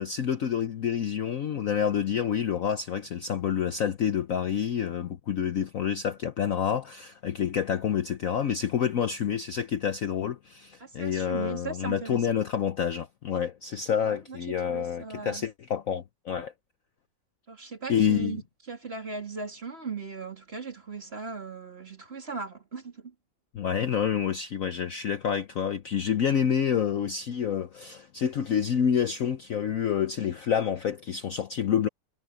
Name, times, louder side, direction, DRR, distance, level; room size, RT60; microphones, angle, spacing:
voice 1, 0.0-16.5 17.9-18.4 23.5-31.9, left 8 dB, 55° left, 1.0 m, -28 dB
voice 2, 10.8-12.2 14.0-14.4 14.7-15.4 17.5-18.4 18.7-23.1, right 4 dB, 35° right, 3.2 m, -38 dB
omnidirectional pair, 2.0 m